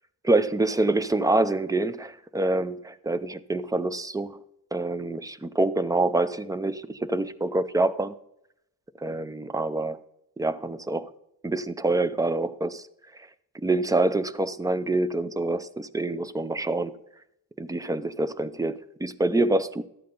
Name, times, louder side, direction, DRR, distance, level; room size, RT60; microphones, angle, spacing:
voice 1, 0.2-4.4 4.7-8.1 9.0-10.0 10.4-11.1 11.4-12.8 13.5-17.0 17.6-19.8, right 2 dB, 10° right, 0.4 m, -26 dB
12.5 x 8.5 x 3.9 m
wide cardioid pair, 130°, 38 cm